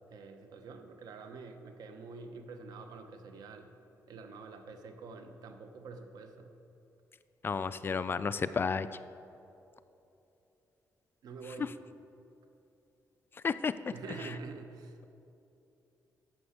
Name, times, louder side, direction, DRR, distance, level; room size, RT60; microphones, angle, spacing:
voice 1, 0.1-3.7 4.1-6.5 11.2-11.8 13.9-15.0, right 4 dB, 85° right, 6 dB, 1.0 m, -46 dB
voice 2, 7.4-8.9 13.4-13.7, left 5 dB, 35° left, 14 dB, 0.4 m, -31 dB
11.5 x 7.0 x 6.6 m, 2.9 s
cardioid pair, 115°, 6 cm